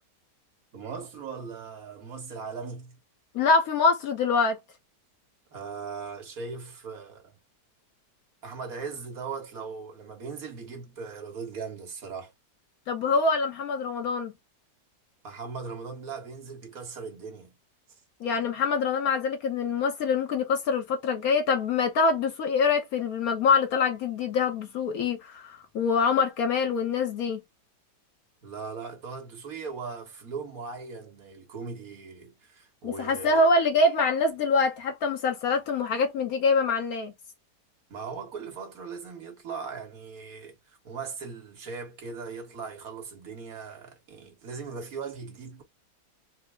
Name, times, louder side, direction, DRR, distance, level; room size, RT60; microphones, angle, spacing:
voice 1, 0.7-3.0 5.5-7.4 8.4-12.3 15.2-17.5 28.4-33.4 37.9-45.6, right 5 dB, 60° right, 1.7 m, -39 dB
voice 2, 3.3-4.6 12.9-14.3 18.2-27.4 32.8-37.1, left 4 dB, 65° left, 1.1 m, -25 dB
4.4 x 2.0 x 3.3 m
omnidirectional pair, 1.8 m